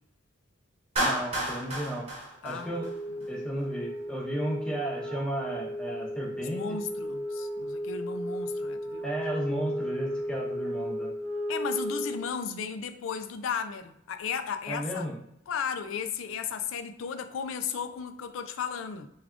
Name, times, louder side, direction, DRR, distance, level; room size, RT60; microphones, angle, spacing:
voice 1, 1.0-2.1 2.4-2.9 3.3-6.8 9.0-11.1 14.7-15.2, right 1 dB, 5° left, 0.8 m, -34 dB
Clapping, 1.0-3.3, right 1 dB, 30° right, 1.1 m, -31 dB
voice 2, 2.4-2.8 3.1-3.3 6.4-9.1 11.5-15.0 15.5-19.1, left 6 dB, 70° left, 0.3 m, -35 dB
Wind instrument woodwind instrument, 2.5-12.3, equal, 80° right, 0.6 m, -34 dB
3.4 x 2.3 x 3.7 m
head